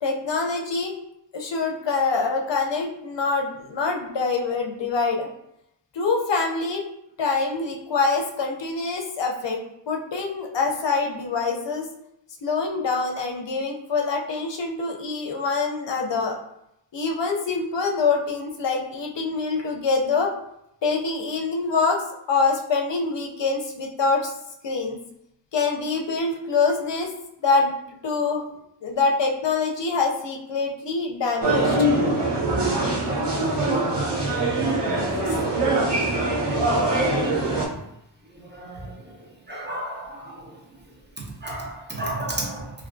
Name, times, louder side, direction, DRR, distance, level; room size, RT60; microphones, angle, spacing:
voice 1, 0.0-0.9 1.3-5.3 5.9-6.9 7.2-11.9 12.4-16.4 16.9-20.3 20.8-24.3 24.6-25.0 25.5-27.1 27.4-27.7 28.0-28.4 28.8-31.8 35.1-35.4, left 4 dB, 70° left, 1 dB, 0.6 m, -25 dB
sound 1, 31.4-37.7, right 2 dB, 65° right, 0.9 m, -23 dB
voice 2, 38.5-38.9 39.5-40.5 41.4-42.7, right 1 dB, 25° right, -3 dB, 0.8 m, -32 dB
3.3 x 2.5 x 2.5 m, 0.80 s
wide cardioid pair, 65°, 45 cm